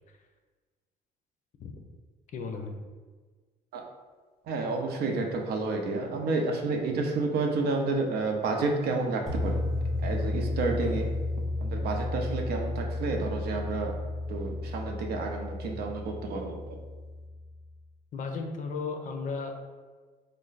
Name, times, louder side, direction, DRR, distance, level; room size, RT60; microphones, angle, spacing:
voice 1, 2.3-2.8 18.1-19.5, left 4 dB, 50° left, 4 dB, 0.5 m, -35 dB
voice 2, 4.4-9.6 10.0-11.1 11.6-13.9 14.3-16.8, right 3 dB, 70° right, 2 dB, 0.6 m, -30 dB
sound 1, 9.3-17.4, left 2 dB, ahead, 0.8 m, -33 dB
3.2 x 2.1 x 3.9 m, 1.4 s
cardioid pair, 110°, 17 cm